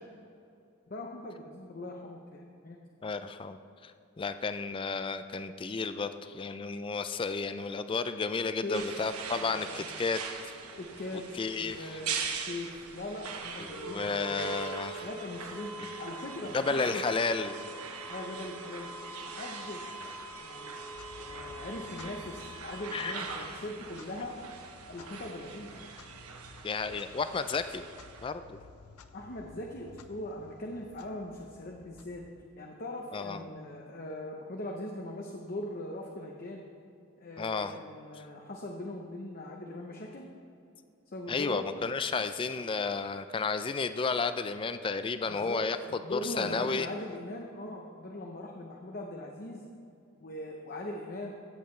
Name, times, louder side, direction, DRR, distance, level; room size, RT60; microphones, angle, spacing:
voice 1, 0.9-2.8 8.6-9.0 9.4-9.8 10.8-14.5 15.0-15.7 16.0-17.3 18.1-18.9 19.2-20.0 20.4-20.8 21.2-24.3 24.9-25.7 29.1-32.2 32.6-36.7 37.2-40.3 41.1-41.7 45.2-49.6 50.2-51.3, left 1 dB, 40° left, 0 dB, 0.7 m, -40 dB
voice 2, 3.0-3.9 4.2-10.2 11.4-12.0 13.6-15.1 15.8-15.9 16.5-17.6 22.9-23.4 26.6-27.8 28.2-28.6 33.1-33.4 37.4-37.7 41.3-46.9, left 4 dB, 25° left, 10 dB, 0.3 m, -32 dB
sound 1, 8.7-28.3, right 4 dB, 85° right, 1.0 m, -41 dB
Clock, 20.8-32.7, left 4 dB, 90° left, 0.6 m, -55 dB
15.0 x 7.9 x 3.2 m, 2.6 s
head